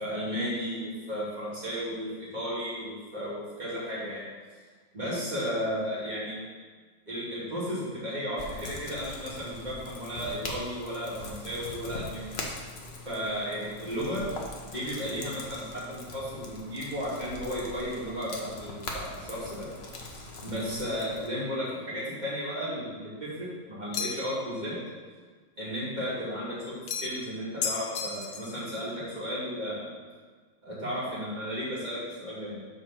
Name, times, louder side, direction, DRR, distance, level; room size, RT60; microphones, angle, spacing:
voice 1, 0.0-4.3 4.9-6.4 7.1-12.3 13.0-14.3 14.7-19.7 20.4-24.8 25.6-29.9 30.6-32.7, equal, 20° right, -8 dB, 2.7 m, -34 dB
sound 1, 8.4-21.3, left 2 dB, 40° left, 0.9 m, -42 dB
sound 2, 23.9-24.4 26.9-27.3 27.6-28.6, left 6 dB, 65° left, 1.1 m, -33 dB
7.7 x 4.5 x 5.9 m, 1.5 s
omnidirectional pair, 2.2 m